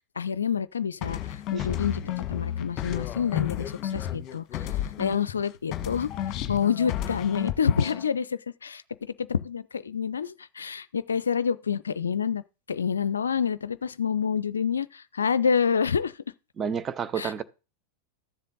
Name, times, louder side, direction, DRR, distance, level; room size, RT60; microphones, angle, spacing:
voice 1, 0.2-12.4 12.7-16.2 17.2-17.4, left 7 dB, 70° left, 0.4 m, -28 dB
sound 1, 1.0-5.4 5.7-8.1, left 11 dB, 35° left, 1.2 m, -32 dB
voice 2, 16.6-17.4, right 7 dB, 25° right, 0.8 m, -30 dB
13.0 x 7.4 x 4.0 m
figure-of-eight pair, 90°, 0 cm